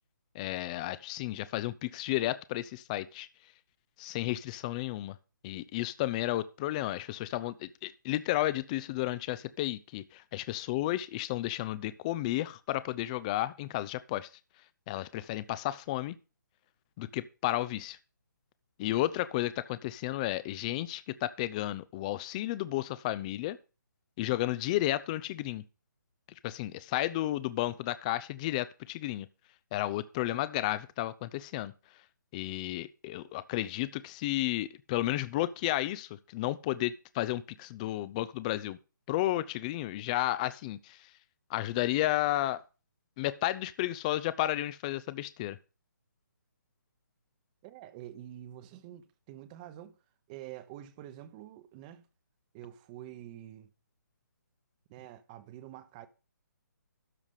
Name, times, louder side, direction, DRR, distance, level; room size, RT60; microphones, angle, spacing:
voice 1, 0.3-3.3 4.0-5.2 5.4-14.3 14.9-16.2 17.0-18.0 18.8-23.6 24.2-25.6 26.4-29.3 29.7-31.7 32.3-38.8 39.1-41.0 41.5-42.6 43.2-45.6, left 15 dB, 20° left, 0.4 m, -32 dB
voice 2, 47.6-49.9 50.3-52.0 52.5-53.7 54.9-56.1, right 12 dB, 25° right, 0.9 m, -47 dB
12.5 x 4.9 x 5.6 m
hypercardioid pair, 150°, 10 cm